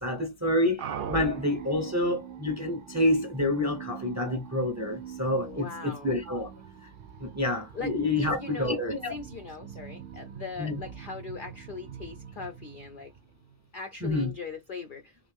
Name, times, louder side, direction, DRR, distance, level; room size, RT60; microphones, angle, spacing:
voice 1, 0.0-6.5 7.2-9.1 10.6-10.8 14.0-14.3, left 1 dB, 20° right, 0.5 m, -28 dB
sound 1, 0.8-13.6, right 8 dB, 80° right, 0.4 m, -43 dB
voice 2, 5.4-6.1 7.7-8.8 9.1-13.1 13.7-15.3, left 4 dB, 65° left, 0.5 m, -40 dB
3.3 x 2.6 x 3.3 m
omnidirectional pair, 1.4 m